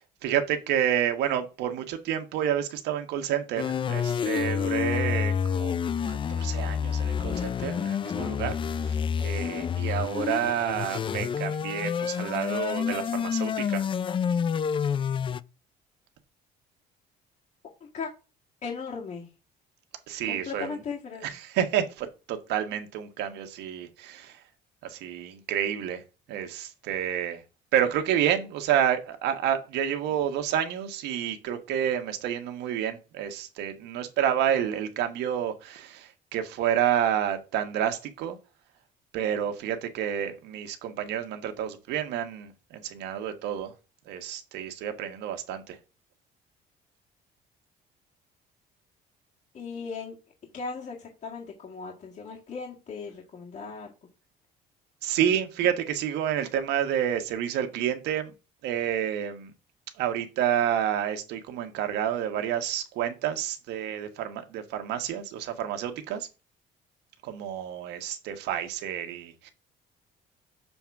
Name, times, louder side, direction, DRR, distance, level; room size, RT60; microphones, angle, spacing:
voice 1, 0.2-5.8 6.1-8.6 8.8-13.9 20.1-20.7 21.2-24.4 24.8-26.0 26.3-27.4 27.7-38.4 39.1-43.7 44.1-45.8 55.0-58.3 58.6-59.5 60.0-66.3 67.2-69.5, right 10 dB, 85° right, 1.3 m, -29 dB
sound 1, 3.6-15.4, left 7 dB, 30° left, 0.4 m, -28 dB
voice 2, 18.6-19.3 20.3-21.3 49.5-50.2 50.5-53.9, left 5 dB, 45° left, 1.9 m, -37 dB
6.9 x 3.6 x 5.9 m
cardioid pair, 110°, 17 cm